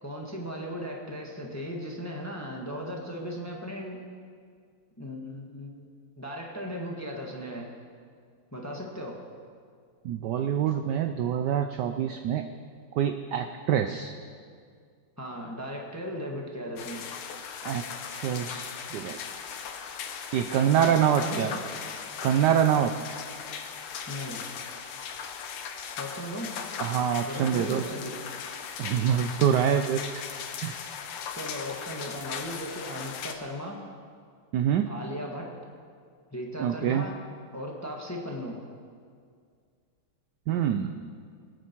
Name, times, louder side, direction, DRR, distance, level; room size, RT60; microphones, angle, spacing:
voice 1, 0.0-4.0 5.0-5.9 6.2-7.7 8.5-9.2 15.2-17.0 20.8-21.6 24.1-24.4 26.0-26.5 27.3-28.1 31.3-33.8 34.9-35.5 36.3-37.1 37.5-38.6, equal, 10° left, 0 dB, 1.1 m, -37 dB
voice 2, 10.0-12.5 12.9-14.1 17.6-17.8 18.1-19.2 20.3-21.5 22.2-22.9 26.8-27.8 28.8-30.2 30.6-30.7 34.5-34.9 36.6-37.0 40.5-41.0, right 9 dB, 75° right, 7 dB, 0.9 m, -25 dB
sound 1, 16.8-33.3, left 7 dB, 85° left, 1.8 m, -38 dB
21.0 x 9.4 x 4.5 m, 2.1 s
omnidirectional pair, 2.4 m